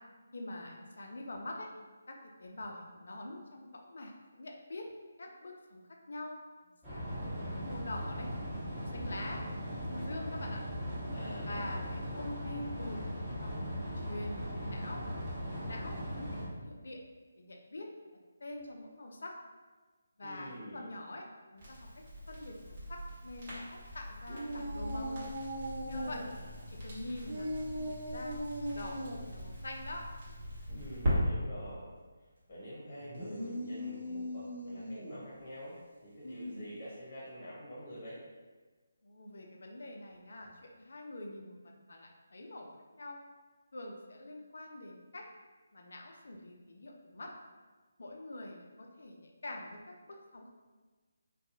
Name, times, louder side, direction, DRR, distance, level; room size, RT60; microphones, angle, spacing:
voice 1, 0.3-1.7 2.1-4.9 5.2-6.4 6.9-8.3 8.9-9.4 9.7-10.6 11.4-15.0 15.6-17.0 17.4-17.9 18.4-19.3 20.2-21.2 21.5-21.9 22.3-25.3 25.8-26.2 26.7-27.5 27.8-28.4 28.7-30.1 36.2-36.7 39.0-43.2 43.7-45.3 45.7-47.3 48.0-49.8 50.1-50.5, left 1 dB, 65° left, 1 dB, 0.4 m, -45 dB
sound 1, 6.8-16.5, equal, 10° right, 1.2 m, -39 dB
voice 2, 8.8-9.1 11.1-11.8 20.2-20.9 25.9-26.8 30.7-31.9 32.2-38.2, equal, 40° left, -7 dB, 0.9 m, -47 dB
Crackle, 21.6-31.1, equal, 40° right, 1.1 m, -41 dB
sound 2, 24.3-26.2 27.2-29.2 33.0-35.2, equal, 60° right, 0.7 m, -39 dB
2.6 x 2.3 x 2.6 m, 1.3 s
figure-of-eight pair, 150°, 0 cm